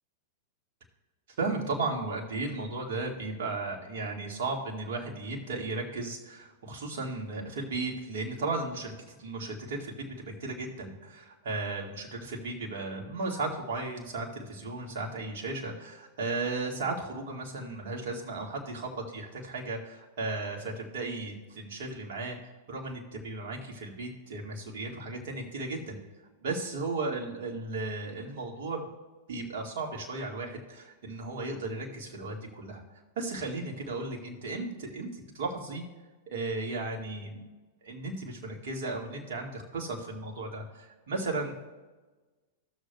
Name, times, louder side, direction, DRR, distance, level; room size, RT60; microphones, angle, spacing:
voice 1, 1.4-9.9 10.3-22.4 22.7-26.0 26.4-28.9 29.3-32.8 33.2-35.8 36.3-37.4 37.8-41.5, right 3 dB, 60° right, 0 dB, 1.9 m, -35 dB
16.5 x 6.5 x 2.3 m, 1.2 s
figure-of-eight pair, 100°, 0 cm